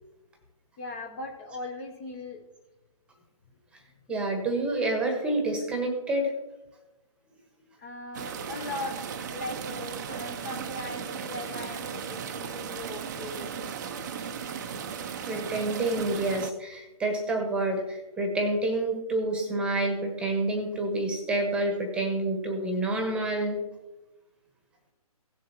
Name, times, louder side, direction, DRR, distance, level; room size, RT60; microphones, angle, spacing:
voice 1, 0.8-2.4 7.8-9.0 9.3-13.6, left 2 dB, 25° left, 3 dB, 0.9 m, -39 dB
voice 2, 4.1-6.3 15.3-23.6, right 2 dB, 5° right, 3 dB, 1.2 m, -28 dB
sound 1, 8.1-16.5, right 6 dB, 30° right, 0.6 m, -36 dB
17.0 x 7.5 x 2.9 m, 1.1 s
hypercardioid pair, 150°, 19 cm